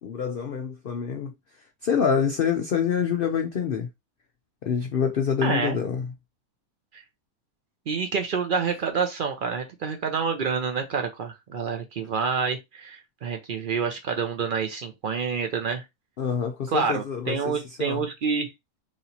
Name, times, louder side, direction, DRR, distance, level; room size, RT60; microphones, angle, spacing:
voice 1, 0.0-1.3 1.8-3.9 4.6-6.1 16.2-18.0, left 7 dB, 90° left, 0.4 m, -26 dB
voice 2, 5.4-5.8 6.9-7.0 7.9-15.8 16.7-18.5, right 5 dB, 70° right, 0.5 m, -28 dB
3.1 x 2.9 x 4.0 m
omnidirectional pair, 1.6 m